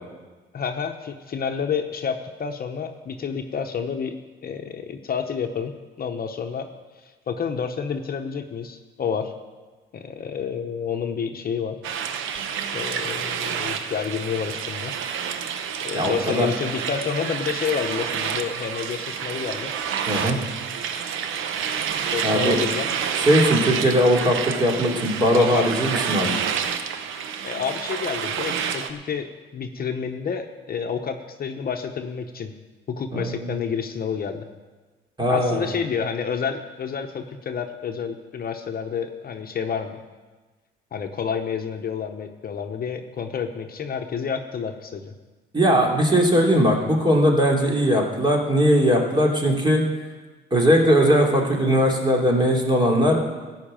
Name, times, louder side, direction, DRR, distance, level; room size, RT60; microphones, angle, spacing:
voice 1, 0.5-4.1 4.4-6.7 7.3-9.3 9.9-11.8 12.7-15.0 15.8-19.7 22.1-22.9 25.3-25.7 27.4-29.3 29.5-32.5 32.9-34.5 35.3-40.0 40.9-45.1, left 6 dB, 50° left, 5 dB, 0.9 m, -29 dB
sound 1, 11.8-28.9, right 7 dB, 80° right, 0.8 m, -28 dB
voice 2, 15.9-16.5 20.1-20.4 22.2-22.6 23.2-26.4 33.1-33.6 35.2-35.7 45.5-49.8 50.5-53.2, equal, 25° right, 0 dB, 2.9 m, -19 dB
14.0 x 5.8 x 8.9 m, 1.3 s
cardioid pair, 90°, 20 cm